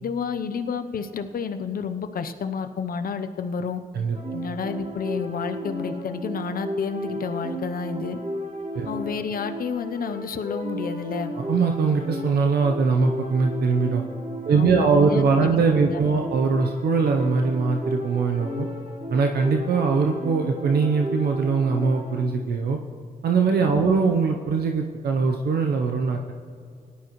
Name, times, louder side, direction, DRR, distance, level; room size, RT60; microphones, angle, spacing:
voice 1, 0.0-3.8 4.3-8.2 8.8-11.3 14.5-16.2 23.7-24.0, left 6 dB, 65° left, 8 dB, 0.8 m, -30 dB
sound 1, 4.1-22.3, equal, 45° right, 2.7 m, -33 dB
voice 2, 11.3-14.0 14.5-18.7 19.1-22.8 23.2-26.3, right 5 dB, 85° right, 3 dB, 0.8 m, -22 dB
17.5 x 11.5 x 3.1 m, 2.3 s
cardioid pair, 80°, 16 cm